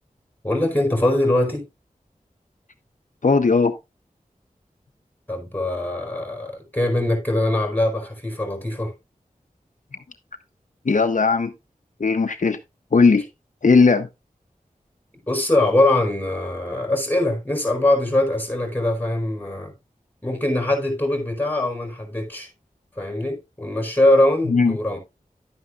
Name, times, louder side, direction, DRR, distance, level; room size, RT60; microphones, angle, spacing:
voice 1, 0.4-1.6 5.3-8.9 15.3-19.7 20.2-22.5 23.0-25.0, left 1 dB, 10° left, 4.7 m, -22 dB
voice 2, 3.2-3.8 10.8-11.5 12.0-12.6 12.9-13.3 13.6-14.1 24.4-24.8, left 4 dB, 60° left, 0.8 m, -17 dB
11.5 x 9.4 x 2.4 m
wide cardioid pair, 55°, 14 cm